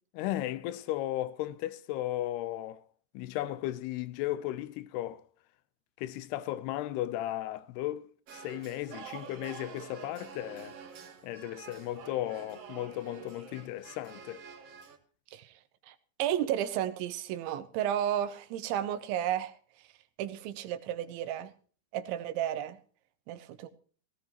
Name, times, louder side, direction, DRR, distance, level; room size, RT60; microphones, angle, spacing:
voice 1, 0.1-2.8 3.1-5.2 6.0-10.8 11.2-14.4, left 14 dB, 80° left, 2.5 m, -35 dB
sound 1, 8.3-15.0, right 7 dB, 60° right, 1.6 m, -48 dB
voice 2, 15.9-19.5 20.2-21.5 21.9-22.8 23.3-23.7, right 11 dB, 85° right, 3.4 m, -32 dB
18.0 x 17.0 x 3.0 m
omnidirectional pair, 5.2 m